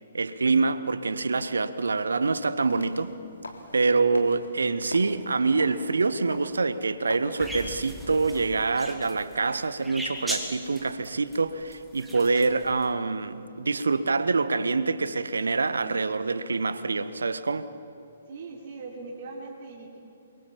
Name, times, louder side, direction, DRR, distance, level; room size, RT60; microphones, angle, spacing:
voice 1, 0.1-3.1 3.7-17.7, right 4 dB, 65° right, 1.3 m, -26 dB
sound 1, 2.5-7.5, left 2 dB, 75° left, 3.3 m, -44 dB
sound 2, 7.4-12.8, right 1 dB, 5° right, 2.4 m, -37 dB
voice 2, 18.3-20.0, right 3 dB, 45° right, 3.5 m, -40 dB
28.5 x 23.0 x 7.4 m
figure-of-eight pair, 125°, 0 cm